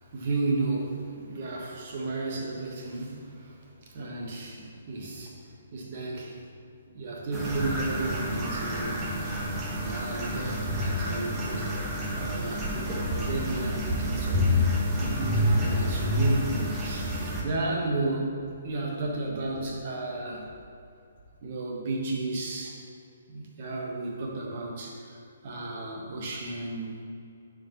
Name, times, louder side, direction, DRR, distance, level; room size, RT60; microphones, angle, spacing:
voice 1, 0.1-3.6 3.9-5.4 5.7-6.4 6.9-9.1 9.8-12.7 13.1-14.7 15.0-18.3 18.6-20.5 21.4-22.8 23.3-25.2 25.4-27.0, right 2 dB, 45° right, -1 dB, 1.3 m, -33 dB
sound 1, 7.3-17.4, left 1 dB, 20° right, 1.1 m, -28 dB
10.5 x 4.8 x 3.0 m, 2.5 s
figure-of-eight pair, 130°, 0 cm